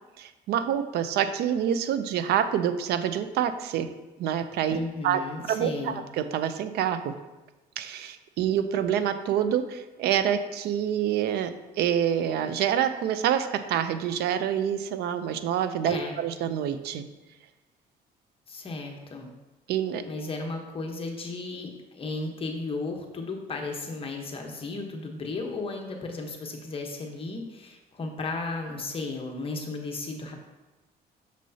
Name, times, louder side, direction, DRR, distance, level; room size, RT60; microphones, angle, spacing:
voice 1, 0.2-3.9 4.2-5.2 5.5-7.1 7.8-11.5 11.8-17.0 19.7-20.0, right 9 dB, 75° right, 10 dB, 0.5 m, -27 dB
voice 2, 4.7-6.0 15.8-16.2 18.5-19.3 20.0-30.4, left 3 dB, 35° left, 1 dB, 1.1 m, -34 dB
6.7 x 6.2 x 2.8 m, 1.1 s
cardioid pair, 110°, 17 cm